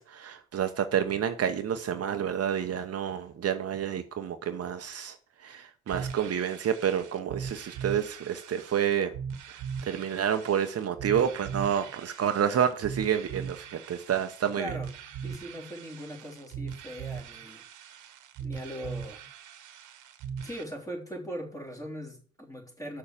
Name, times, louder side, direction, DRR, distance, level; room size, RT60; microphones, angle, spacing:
voice 1, 0.0-5.1 5.4-9.1 9.9-14.7, right 8 dB, 50° right, 1.0 m, -29 dB
sound 1, 5.9-20.6, right 7 dB, 85° right, 1.4 m, -40 dB
voice 2, 14.6-14.9 15.2-18.0 18.4-19.2 20.4-23.0, equal, 10° left, 3.2 m, -40 dB
6.5 x 6.4 x 7.3 m
cardioid pair, 90°, 30 cm